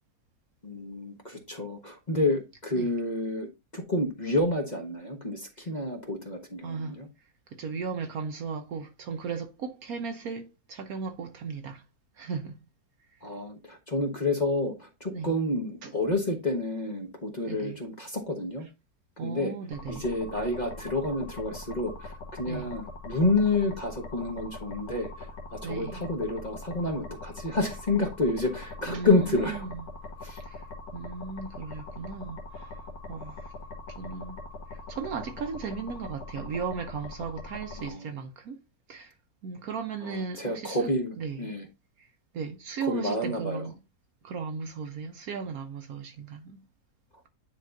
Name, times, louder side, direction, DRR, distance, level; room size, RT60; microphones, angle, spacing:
voice 1, 0.6-3.5 3.7-7.1 13.2-18.7 19.2-19.5 19.9-29.6 30.2-30.4 37.8-38.1 40.0-41.6 42.8-43.7, left 2 dB, 30° left, 1.1 m, -29 dB
voice 2, 6.6-7.0 7.5-11.8 12.1-12.6 15.1-15.4 15.8-16.0 17.4-17.8 19.2-20.0 22.5-22.7 25.6-26.1 28.8-29.9 30.4-30.7 30.9-33.5 33.9-34.4 34.7-38.6 38.9-39.1 39.4-40.9 41.2-41.5 42.0-43.8 44.2-46.6, right 5 dB, 65° right, 1.0 m, -36 dB
sound 1, 19.7-37.9, left 2 dB, 80° left, 1.9 m, -42 dB
9.6 x 4.3 x 2.5 m
omnidirectional pair, 1.9 m